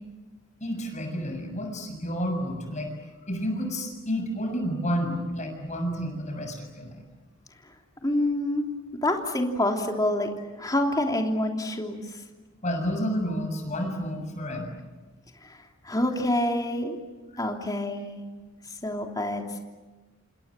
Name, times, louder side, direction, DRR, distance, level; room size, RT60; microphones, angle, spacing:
voice 1, 0.6-7.0 12.6-14.7, equal, 35° left, 4 dB, 6.8 m, -30 dB
voice 2, 8.0-8.6 8.9-10.3 10.6-12.2 15.4-17.0 17.4-18.2 18.8-19.6, left 1 dB, 20° left, 2 dB, 3.2 m, -27 dB
28.0 x 27.5 x 7.6 m, 1.2 s
head